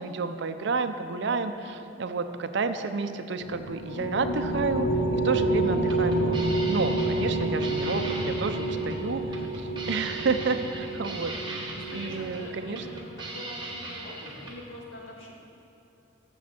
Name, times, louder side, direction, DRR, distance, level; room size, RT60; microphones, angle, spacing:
voice 1, 0.0-6.4 6.7-12.8, right 4 dB, 65° right, 9 dB, 0.6 m, -30 dB
sound 1, 3.4-13.2, right 2 dB, 60° left, 0.6 m, -29 dB
sound 2, 5.7-14.6, right 2 dB, 25° right, 1.4 m, -40 dB
voice 2, 11.7-13.0 13.3-15.3, left 1 dB, 85° left, -3 dB, 2.0 m, -44 dB
14.0 x 7.3 x 4.3 m, 2.9 s
head